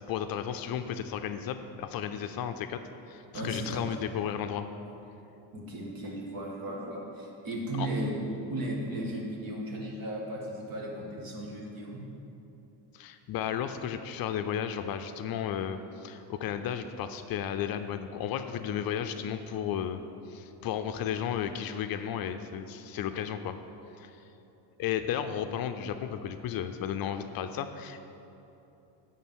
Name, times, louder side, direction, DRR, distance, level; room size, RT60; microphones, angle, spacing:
voice 1, 0.0-4.7 7.8-7.9 12.9-20.0 20.3-23.5 24.0-24.2 24.8-28.0, left 9 dB, 55° left, 8 dB, 0.5 m, -34 dB
voice 2, 3.3-3.8 5.5-8.1 8.5-12.0, right 1 dB, 50° right, -2 dB, 2.0 m, -35 dB
10.5 x 3.9 x 7.4 m, 2.9 s
cardioid pair, 125°, 43 cm